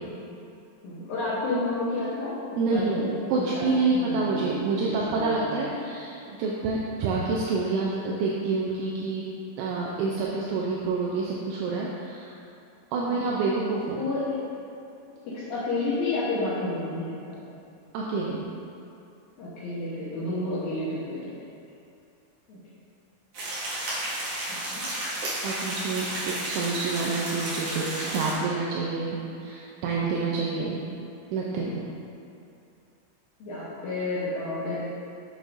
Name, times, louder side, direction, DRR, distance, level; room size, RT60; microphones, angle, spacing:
voice 1, 0.8-2.4 2.7-3.1 3.3-4.6 4.8-5.7 13.0-13.4 13.9-14.4 15.3-17.3 19.4-21.3 22.5-22.6 24.5-24.9 33.4-34.8, left 2 dB, 80° left, -10 dB, 2.0 m, -31 dB
voice 2, 2.6-3.0 3.3-6.1 6.4-9.3 9.6-12.3 12.9-14.0 17.9-18.4 25.4-30.8 31.3-31.9, right 3 dB, 80° right, -4 dB, 2.9 m, -28 dB
sound 1, 23.3-28.3, right 1 dB, 60° right, 3.1 m, -32 dB
8.5 x 6.4 x 2.6 m, 2.7 s
omnidirectional pair, 5.7 m